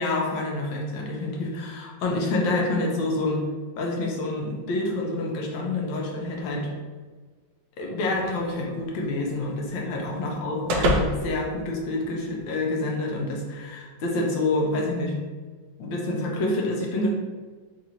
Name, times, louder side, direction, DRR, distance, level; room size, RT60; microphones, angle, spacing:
voice 1, 0.0-3.5 3.8-6.7 7.8-15.1 15.8-17.1, left 2 dB, 80° left, -1 dB, 1.4 m, -27 dB
sound 1, 8.1-12.5, equal, 75° right, 0.9 m, -31 dB
3.8 x 2.6 x 2.8 m, 1.4 s
omnidirectional pair, 2.1 m